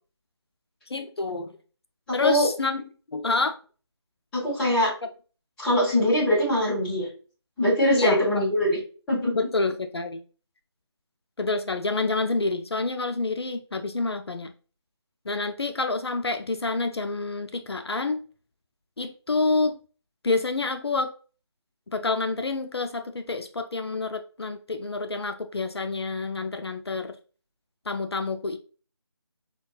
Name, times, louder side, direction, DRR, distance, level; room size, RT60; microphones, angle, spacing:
voice 1, 0.9-1.5 2.1-2.8 3.1-3.5 8.0-8.2 9.3-10.2 11.4-14.5 15.3-18.2 19.0-19.8 20.2-21.1 21.9-27.1 27.9-28.6, left 3 dB, 65° left, 0.4 m, -28 dB
voice 2, 2.1-2.5 4.3-4.9 5.6-7.1 7.6-8.8 9.1-9.3, left 1 dB, 5° left, 0.8 m, -22 dB
5.1 x 2.3 x 2.3 m
figure-of-eight pair, 155°, 15 cm